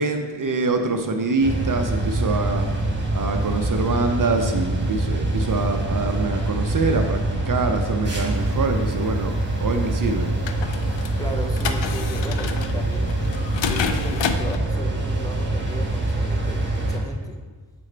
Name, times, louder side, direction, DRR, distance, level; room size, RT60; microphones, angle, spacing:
voice 1, 0.0-2.7 3.1-9.4 9.6-10.3, right 3 dB, 45° right, 5 dB, 0.5 m, -25 dB
sound 1, 1.4-17.0, right 2 dB, 25° right, 1.4 m, -24 dB
sound 2, 8.3-14.6, left 6 dB, 70° left, 0.5 m, -31 dB
voice 2, 11.2-13.3 13.7-17.4, right 1 dB, 10° left, 1 dB, 0.6 m, -36 dB
7.5 x 4.8 x 3.2 m, 1.4 s
wide cardioid pair, 75°, 46 cm